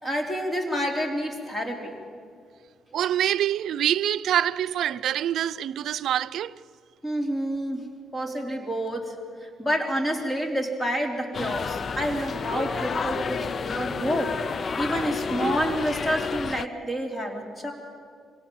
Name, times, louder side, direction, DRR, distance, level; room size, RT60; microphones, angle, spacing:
voice 1, 0.0-2.0 7.0-9.2 9.4-14.4 14.8-17.7, equal, 15° left, 4.1 m, -28 dB
voice 2, 2.9-6.5, right 11 dB, 75° right, 0.6 m, -25 dB
sound 1, 11.3-16.7, left 5 dB, 45° left, 0.5 m, -30 dB
25.0 x 17.5 x 7.3 m
cardioid pair, 90°, 0 cm